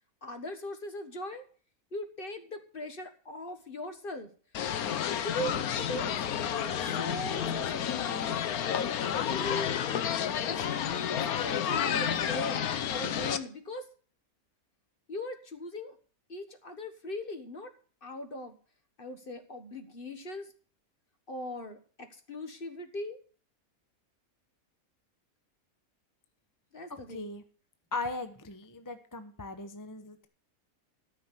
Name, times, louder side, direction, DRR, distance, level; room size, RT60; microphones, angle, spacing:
voice 1, 0.2-1.4 1.9-4.3 5.2-5.6 5.9-9.7 10.5-13.8 15.1-15.9 16.3-17.7 18.0-18.5 19.0-20.5 21.3-23.2 26.7-27.3, left 1 dB, 40° left, 7 dB, 1.5 m, -40 dB
sound 1, 4.5-13.4, left 9 dB, 90° left, 1.3 m, -31 dB
voice 2, 26.9-27.4 27.9-30.3, left 3 dB, 15° left, 8 dB, 0.8 m, -38 dB
13.5 x 5.9 x 8.2 m, 0.42 s
omnidirectional pair, 1.5 m